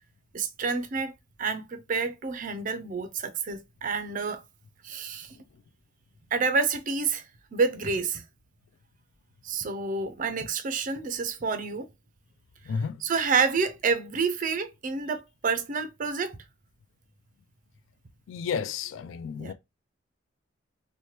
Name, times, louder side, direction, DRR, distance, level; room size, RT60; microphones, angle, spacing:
voice 1, 0.3-1.1 1.4-4.4 4.8-5.3 6.3-7.3 7.5-8.2 9.4-11.9 12.7-16.4 19.4-19.5, right 4 dB, 40° right, 0.4 m, -29 dB
voice 2, 12.7-13.0 18.3-19.5, left 6 dB, 70° left, 0.3 m, -32 dB
2.9 x 2.1 x 3.0 m
head